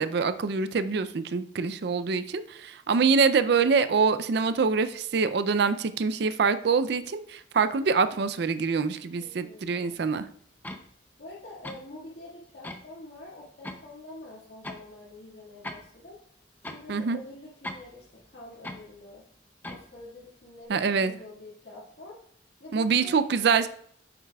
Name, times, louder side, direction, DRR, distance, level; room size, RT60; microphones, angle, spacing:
voice 1, 0.0-10.3 16.9-17.2 20.7-21.1 22.7-23.7, right 5 dB, 60° right, 12 dB, 0.4 m, -25 dB
voice 2, 9.2-10.0 11.2-16.2 16.7-19.2 19.6-22.2 22.6-23.2, left 2 dB, 65° left, -7 dB, 1.9 m, -46 dB
sound 1, 10.6-10.9 11.6-11.8 12.6-12.8 13.6-13.8 14.6-14.9 15.6-15.8 16.6-16.8 17.6-17.9 18.6-18.9 19.6-19.9, left 1 dB, 10° left, 0.5 m, -38 dB
9.4 x 7.3 x 2.3 m, 0.67 s
head